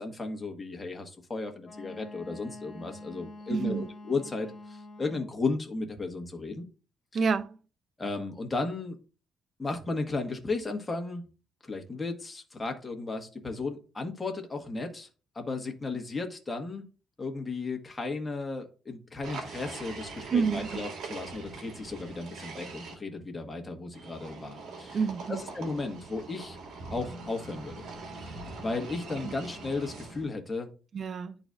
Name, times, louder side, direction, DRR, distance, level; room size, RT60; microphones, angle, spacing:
voice 1, 0.0-6.7 8.0-9.0 9.6-11.2 11.6-15.1 15.3-16.8 17.2-25.0 25.3-26.6 26.9-27.8 28.2-30.7, left 3 dB, 20° left, 1.4 m, -35 dB
Wind instrument woodwind instrument, 1.6-5.4, left 2 dB, 35° left, 1.3 m, -46 dB
voice 2, 3.5-3.9 7.1-7.6 20.3-20.8 24.9-25.4 29.2-29.3 30.9-31.4, right 5 dB, 50° right, 0.5 m, -28 dB
sound 1, 19.2-22.9 23.9-30.3, right 3 dB, 75° right, 2.0 m, -42 dB
11.0 x 4.0 x 2.5 m
cardioid pair, 90°, 0 cm